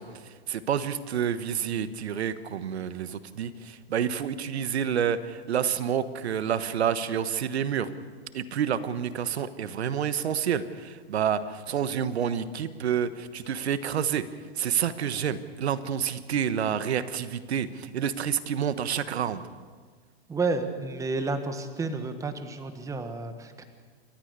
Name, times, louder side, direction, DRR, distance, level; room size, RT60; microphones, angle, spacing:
voice 1, 0.0-7.9 8.3-14.3 14.5-19.4, right 8 dB, 85° right, 13 dB, 1.3 m, -29 dB
voice 2, 20.3-23.6, right 3 dB, 10° right, 8 dB, 1.4 m, -31 dB
29.0 x 13.5 x 6.8 m, 1.5 s
hypercardioid pair, 140°, 32 cm